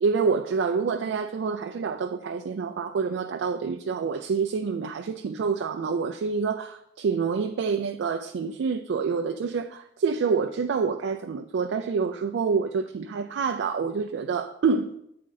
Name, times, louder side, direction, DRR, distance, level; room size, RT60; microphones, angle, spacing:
voice 1, 0.0-14.9, right 5 dB, 70° right, 0.3 m, -27 dB
8.5 x 3.8 x 3.9 m
head